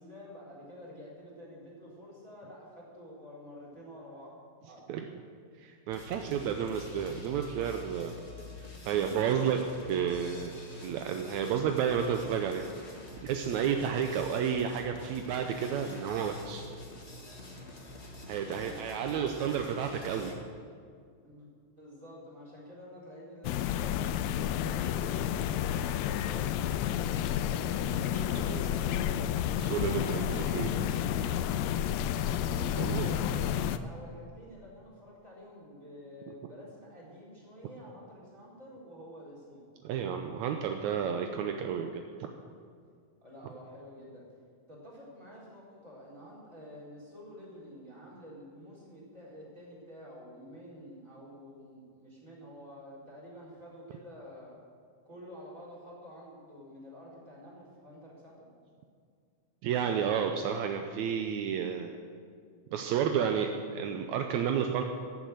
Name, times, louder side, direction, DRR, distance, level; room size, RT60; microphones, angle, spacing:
voice 1, 0.0-4.3 4.7-4.9 14.1-14.5 18.2-20.3 21.2-21.5 21.8-27.9 28.4-32.0 32.4-39.7 43.2-44.2 44.7-54.6 55.0-58.5, equal, 25° right, -4 dB, 4.4 m, -49 dB
voice 2, 5.6-8.1 8.9-9.6 9.9-10.5 10.8-12.7 13.2-16.6 18.3-20.3 28.1-28.6 29.6-30.7 32.8-33.1 39.8-42.0 59.6-61.9 62.7-64.8, right 8 dB, 80° right, 5 dB, 2.0 m, -31 dB
sound 1, 5.9-20.3, left 2 dB, 30° left, 1.4 m, -47 dB
sound 2, 23.4-33.8, left 10 dB, 80° left, 1.7 m, -30 dB
14.5 x 7.3 x 7.9 m, 2.1 s
omnidirectional pair, 3.4 m